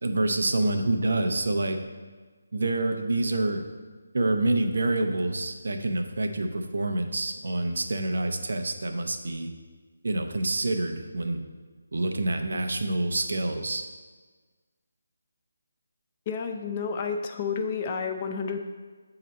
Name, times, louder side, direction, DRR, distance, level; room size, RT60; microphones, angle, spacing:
voice 1, 0.0-1.8 2.5-3.6 4.1-9.5 10.0-11.4 11.9-13.9, right 2 dB, 60° right, 5 dB, 0.5 m, -27 dB
voice 2, 16.3-18.6, left 5 dB, 30° left, 5 dB, 0.4 m, -30 dB
8.2 x 2.9 x 4.0 m, 1.4 s
figure-of-eight pair, 150°, 0 cm